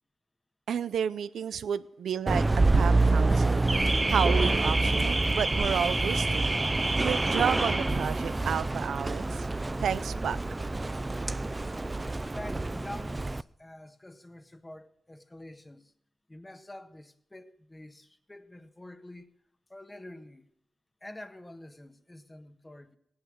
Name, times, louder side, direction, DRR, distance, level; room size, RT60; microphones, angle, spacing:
voice 1, 0.7-2.4 2.7-3.7 4.0-6.5 7.0-9.5 9.8-10.4, right 8 dB, 80° right, 0.5 m, -31 dB
Car / Alarm, 2.3-13.4, right 2 dB, 25° right, 0.5 m, -27 dB
voice 2, 12.3-15.9 16.3-19.4 19.7-20.4 21.0-23.0, left 1 dB, 20° left, 1.5 m, -47 dB
16.5 x 11.0 x 6.4 m
cardioid pair, 50°, 0 cm